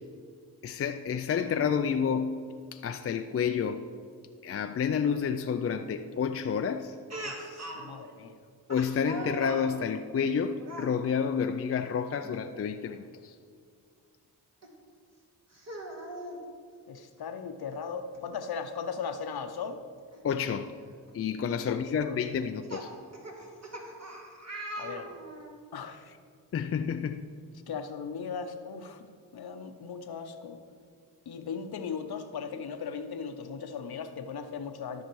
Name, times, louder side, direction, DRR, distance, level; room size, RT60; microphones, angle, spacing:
voice 1, 0.6-2.4 2.7-3.9 4.4-7.0 8.7-13.4 20.2-20.8 21.1-22.9 26.5-27.3, left 7 dB, 35° left, 8 dB, 0.4 m, -30 dB
Speech, 7.1-7.9 8.7-9.7 10.6-10.9 12.2-12.4 12.9-13.0 14.6-14.7 15.5-16.4 17.7-17.8 18.1-18.2 20.1-20.2 20.9-21.1 22.2-25.5, right 1 dB, 40° right, 1.6 m, -41 dB
voice 2, 7.2-8.3 16.9-19.8 21.7-22.2 23.4-23.5 24.8-25.1 25.7-26.2 27.7-29.1 29.3-30.6 31.3-35.0, left 6 dB, 60° left, 8 dB, 0.8 m, -38 dB
13.0 x 5.6 x 3.1 m, 2.2 s
cardioid pair, 45°, 42 cm